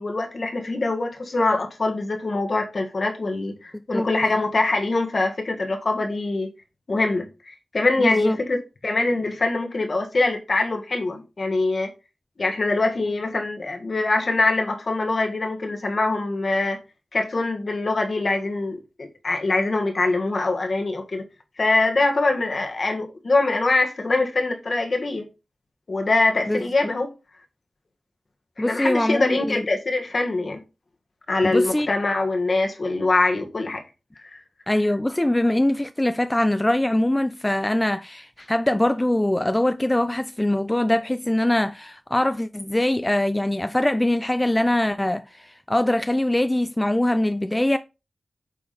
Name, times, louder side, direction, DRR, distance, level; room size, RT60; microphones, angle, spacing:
voice 1, 0.0-6.5 6.9-11.9 12.4-16.8 17.1-21.2 21.6-25.3 25.9-27.1 28.6-30.6 31.3-33.8 34.2-34.4, left 2 dB, 55° left, 1.8 m, -23 dB
voice 2, 8.0-8.4 26.5-26.6 28.6-29.7 31.4-31.9 34.7-47.8, left 1 dB, 15° left, 0.5 m, -22 dB
8.3 x 3.7 x 4.3 m
cardioid pair, 50°, 0 cm